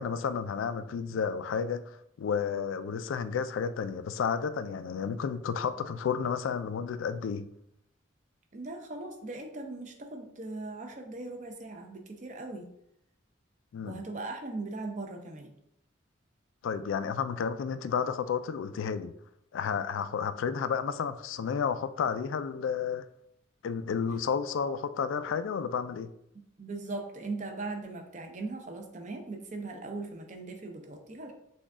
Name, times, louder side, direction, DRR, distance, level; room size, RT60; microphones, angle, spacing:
voice 1, 0.0-1.8 2.2-7.5 13.7-14.0 16.6-19.1 19.5-23.1 23.6-26.1, left 6 dB, 80° left, 13 dB, 0.3 m, -31 dB
voice 2, 8.5-12.7 13.8-15.5 26.6-31.3, right 3 dB, 35° right, 3 dB, 0.6 m, -39 dB
6.0 x 2.3 x 3.6 m, 0.77 s
head